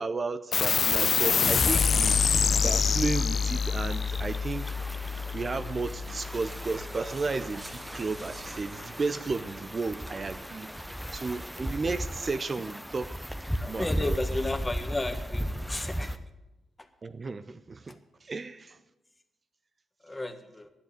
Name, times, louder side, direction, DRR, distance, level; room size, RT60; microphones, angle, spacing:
voice 1, 0.0-2.2 2.6-4.7 5.3-13.2 13.7-14.2 17.0-17.9 18.2-18.8, right 3 dB, 40° right, 11 dB, 0.6 m, -33 dB
sound 1, 0.5-7.4, left 6 dB, 50° left, 0.4 m, -27 dB
sound 2, 1.0-16.2, equal, ahead, 0.8 m, -37 dB
sound 3, 5.1-9.8, right 1 dB, 20° right, 2.4 m, -49 dB
voice 2, 13.6-16.1 16.8-16.9 17.8-17.9 20.0-20.7, left 2 dB, 20° left, 7 dB, 1.5 m, -33 dB
11.0 x 8.0 x 8.7 m, 1.0 s
hypercardioid pair, 40°, 0 cm